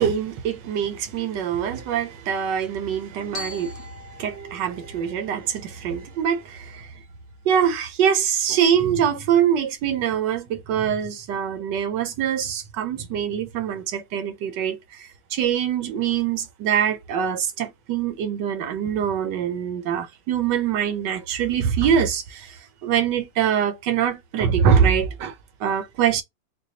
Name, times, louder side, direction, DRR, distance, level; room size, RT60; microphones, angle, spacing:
voice 1, 0.0-6.9 7.4-26.2, right 8 dB, 75° right, 1.2 m, -24 dB
Glockenspiel, 3.3-7.5, left 3 dB, 50° left, 1.2 m, -43 dB
4.0 x 2.2 x 2.7 m
omnidirectional pair, 2.1 m